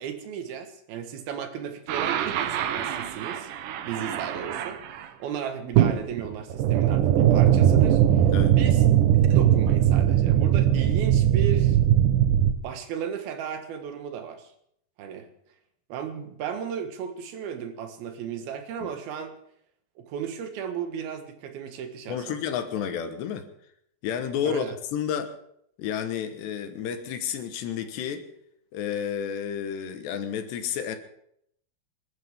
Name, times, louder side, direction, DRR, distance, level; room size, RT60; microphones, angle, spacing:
voice 1, 0.0-3.5 3.8-4.8 5.2-8.8 9.2-11.8 12.6-14.5 15.0-15.3 15.9-19.3 20.0-22.4 24.4-24.7, right 8 dB, 65° right, 7 dB, 3.1 m, -35 dB
sound 1, 1.9-5.0 5.7-12.5, right 10 dB, 85° right, 1.8 m, -21 dB
voice 2, 22.1-23.5 24.0-25.3 25.8-28.2 28.7-31.0, left 8 dB, 75° left, 8 dB, 3.4 m, -31 dB
26.5 x 13.0 x 3.6 m, 0.70 s
omnidirectional pair, 5.1 m